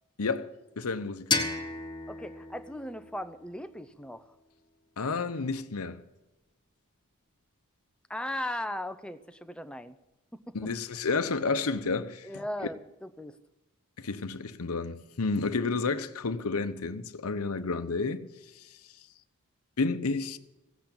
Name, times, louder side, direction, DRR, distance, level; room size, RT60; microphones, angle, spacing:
voice 1, 0.2-0.5 0.8-1.4 5.0-6.0 10.5-12.3 14.0-18.2 18.6-18.8 19.8-20.4, left 4 dB, 75° left, 0.8 m, -31 dB
sound 1, 1.3-4.1, left 3 dB, 20° left, 1.4 m, -34 dB
voice 2, 2.1-4.2 8.1-10.0 10.3-10.6 12.2-13.4, left 1 dB, 5° left, 0.6 m, -37 dB
16.5 x 8.2 x 8.8 m
head